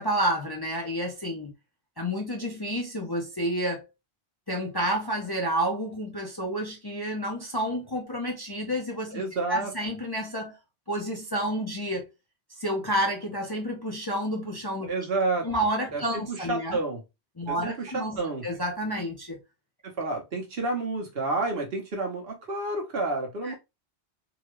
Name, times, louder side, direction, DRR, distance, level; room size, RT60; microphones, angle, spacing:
voice 1, 0.0-1.5 2.0-3.8 4.5-9.2 9.5-10.6 10.9-12.1 12.6-14.9 15.4-16.8 17.4-19.4 23.4-23.5, equal, 25° left, 0.6 m, -30 dB
voice 2, 9.1-9.7 14.9-15.5 15.9-17.0 17.5-18.4 20.0-23.5, right 2 dB, 60° right, 1.3 m, -30 dB
3.8 x 2.3 x 3.0 m
omnidirectional pair, 1.1 m